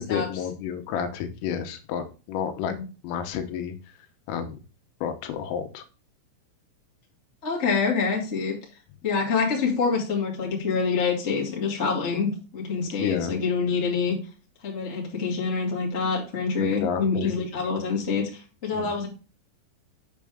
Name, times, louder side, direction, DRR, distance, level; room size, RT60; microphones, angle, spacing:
voice 1, 0.1-2.7 3.0-4.0 4.3-4.6 5.0-5.8 13.0-13.3 16.6-17.3 18.7-19.0, left 8 dB, 85° left, 7 dB, 3.6 m, -30 dB
voice 2, 7.4-8.5 9.0-14.1 14.6-19.1, left 5 dB, 55° left, -2 dB, 0.7 m, -26 dB
7.4 x 6.6 x 3.5 m, 0.35 s
omnidirectional pair, 5.8 m